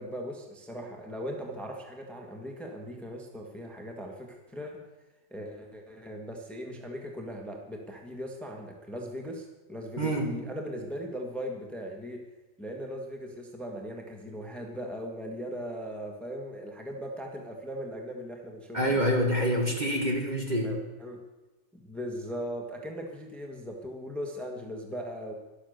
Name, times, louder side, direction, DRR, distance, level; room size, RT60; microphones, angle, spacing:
voice 1, 0.0-4.8 5.3-12.2 12.6-19.0 20.6-21.2 21.8-25.3, equal, ahead, 2 dB, 1.7 m, -39 dB
voice 2, 10.0-10.3 18.7-20.7, equal, 25° right, 1 dB, 2.0 m, -26 dB
13.0 x 12.0 x 6.7 m, 1.1 s
omnidirectional pair, 1.9 m